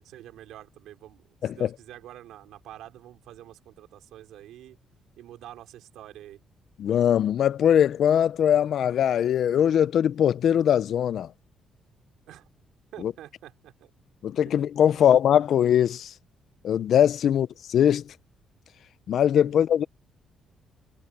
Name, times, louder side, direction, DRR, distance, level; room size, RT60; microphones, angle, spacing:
voice 1, 0.0-4.8 5.2-6.4 12.3-12.5 12.9-13.9 14.9-15.1 17.3-17.4 19.5-19.6, right 13 dB, 85° right, 3.8 m, -47 dB
voice 2, 6.8-11.3 13.0-13.1 14.2-16.1 16.6-18.0 19.1-19.9, left 9 dB, 65° left, 0.6 m, -21 dB
cardioid pair, 90°, 0 cm